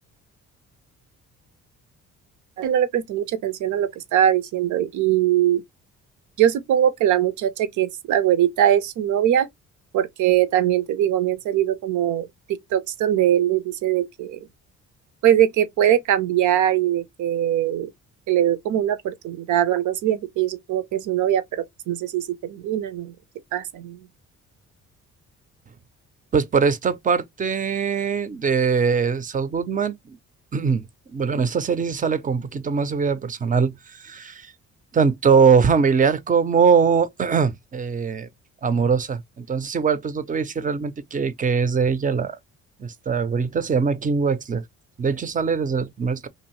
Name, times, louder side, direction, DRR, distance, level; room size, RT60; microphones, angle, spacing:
voice 1, 2.6-5.6 6.4-9.5 9.9-14.5 15.2-17.9 18.3-23.1 23.5-24.1, right 11 dB, 75° right, 0.6 m, -21 dB
voice 2, 26.3-30.2 30.5-34.5 34.9-38.3 38.6-42.4 42.8-44.6 45.0-46.3, right 5 dB, 25° right, 0.5 m, -22 dB
2.7 x 2.6 x 3.0 m
cardioid pair, 90°, 30 cm